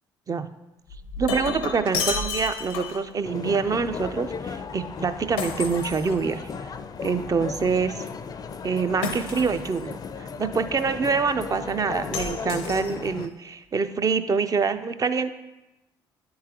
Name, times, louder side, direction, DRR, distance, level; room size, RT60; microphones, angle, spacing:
Shatter, 0.9-3.1 5.4-6.7 9.0-9.8 12.1-13.2, left 5 dB, 85° left, 0.6 m, -31 dB
voice 1, 1.2-6.7 7.0-8.0 8.6-15.3, right 5 dB, 35° right, 10 dB, 0.5 m, -26 dB
sound 1, 3.2-13.3, left 5 dB, 40° left, 0.4 m, -36 dB
9.5 x 3.8 x 2.9 m, 1.0 s
hypercardioid pair, 55°, 10 cm